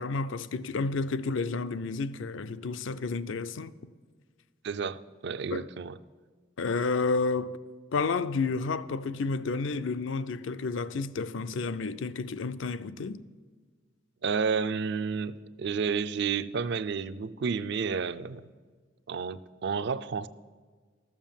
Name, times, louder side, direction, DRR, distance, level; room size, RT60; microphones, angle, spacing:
voice 1, 0.0-3.7 5.5-5.7 6.6-7.6 7.9-13.2, left 4 dB, 75° left, 0.5 m, -31 dB
voice 2, 4.6-6.0 14.2-18.4 19.1-20.3, right 5 dB, 60° right, 0.4 m, -31 dB
13.0 x 7.3 x 7.3 m
head